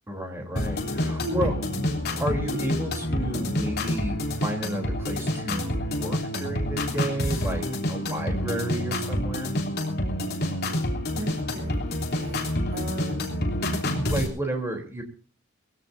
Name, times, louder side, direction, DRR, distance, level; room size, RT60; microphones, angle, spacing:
voice 1, 0.1-1.5 2.2-9.6 13.9-15.0, right 1 dB, 10° right, 2 dB, 3.6 m, -32 dB
sound 1, 0.6-14.3, left 1 dB, 50° left, 3.6 m, -28 dB
voice 2, 1.0-1.5 11.1-13.3, right 2 dB, 80° right, 4 dB, 3.1 m, -38 dB
22.0 x 16.5 x 2.7 m, 0.38 s
head